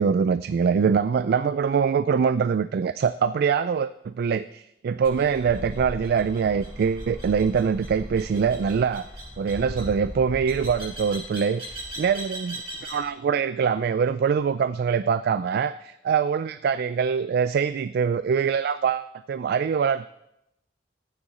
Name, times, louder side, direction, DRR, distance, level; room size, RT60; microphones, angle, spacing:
voice 1, 0.0-9.0 9.4-20.1, right 6 dB, 60° right, 14 dB, 0.3 m, -24 dB
sound 1, 5.0-13.1, equal, 30° right, 4.7 m, -38 dB
14.0 x 9.0 x 4.2 m, 0.85 s
head